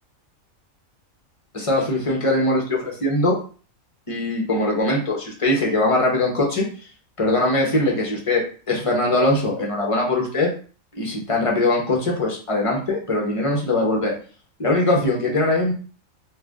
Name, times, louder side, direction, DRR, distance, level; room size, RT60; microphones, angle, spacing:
voice 1, 1.5-3.4 4.1-6.7 7.2-10.5 10.9-14.1 14.6-15.7, left 2 dB, 30° left, -1 dB, 0.7 m, -21 dB
2.5 x 2.4 x 3.4 m, 0.39 s
omnidirectional pair, 1.4 m